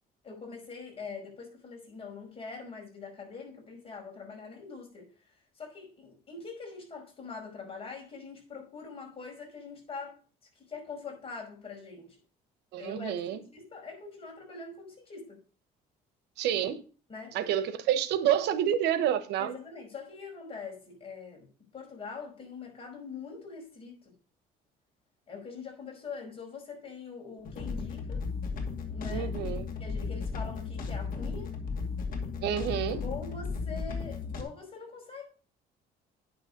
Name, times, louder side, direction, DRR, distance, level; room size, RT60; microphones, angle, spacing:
voice 1, 0.2-5.1 5.6-10.2 10.6-12.2 12.8-15.4 17.1-17.4 19.4-21.5 21.7-24.2 25.3-28.2 28.9-29.3 29.8-31.5 33.0-35.3, left 5 dB, 35° left, 5.4 m, -43 dB
voice 2, 12.7-13.4 16.4-16.8 17.3-19.6 29.1-29.6 32.4-33.0, right 10 dB, 85° right, 1.0 m, -28 dB
sound 1, 27.4-34.4, left 4 dB, 55° left, 2.3 m, -35 dB
9.5 x 6.2 x 5.1 m
cardioid pair, 110°, 17 cm